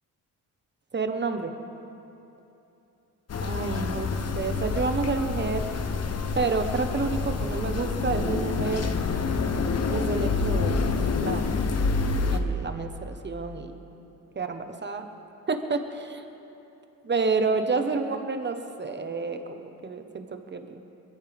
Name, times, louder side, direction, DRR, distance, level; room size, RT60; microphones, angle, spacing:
voice 1, 0.9-1.5 3.4-5.7 6.3-8.9 9.9-11.5 12.3-13.7 14.3-15.1 15.5-16.2 17.0-20.8, right 4 dB, 35° right, 7 dB, 1.3 m, -29 dB
sound 1, 3.3-12.4, left 4 dB, 50° left, 1.1 m, -27 dB
22.0 x 16.5 x 3.6 m, 2.9 s
cardioid pair, 80°, 33 cm